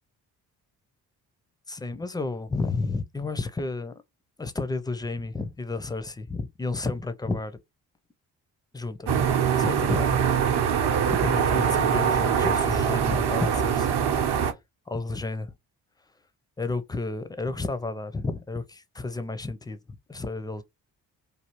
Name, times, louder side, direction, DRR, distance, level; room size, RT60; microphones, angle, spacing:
voice 1, 1.7-3.9 4.4-7.5 8.7-9.3 9.6-10.2 11.1-14.4 14.9-15.5 16.6-19.8 20.1-20.6, left 3 dB, 10° left, 0.5 m, -31 dB
sound 1, 9.1-14.5, right 7 dB, 55° right, 0.8 m, -23 dB
3.4 x 2.3 x 3.0 m
hypercardioid pair, 40°, 48 cm